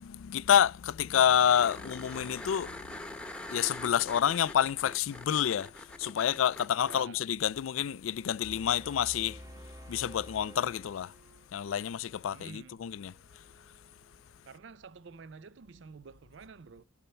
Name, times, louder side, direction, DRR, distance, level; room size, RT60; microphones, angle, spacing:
voice 1, 0.0-9.4 9.9-11.1 11.5-13.4, left 9 dB, 75° left, 0.3 m, -28 dB
sound 1, 1.5-7.0 9.7-9.8, left 1 dB, 5° left, 1.0 m, -44 dB
voice 2, 6.8-7.3 12.3-12.9 14.4-16.8, right 5 dB, 60° right, 0.4 m, -49 dB
Wind instrument woodwind instrument, 7.1-14.9, right 5 dB, 35° right, 3.7 m, -67 dB
sound 2, 8.4-11.6, equal, 15° right, 1.2 m, -49 dB
10.0 x 4.3 x 5.5 m
head